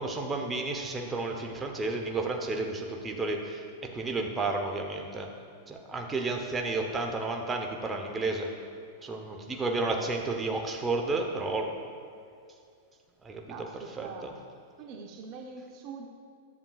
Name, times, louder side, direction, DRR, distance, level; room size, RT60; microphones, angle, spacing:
voice 1, 0.0-3.6 3.9-5.3 5.7-8.5 9.0-11.7 13.2-13.4 14.0-14.3, right 3 dB, 20° right, 2 dB, 0.9 m, -31 dB
voice 2, 13.5-14.3 14.8-16.1, right 5 dB, 50° right, 2 dB, 0.8 m, -43 dB
10.5 x 7.1 x 2.4 m, 2.3 s
hypercardioid pair, 110°, 0 cm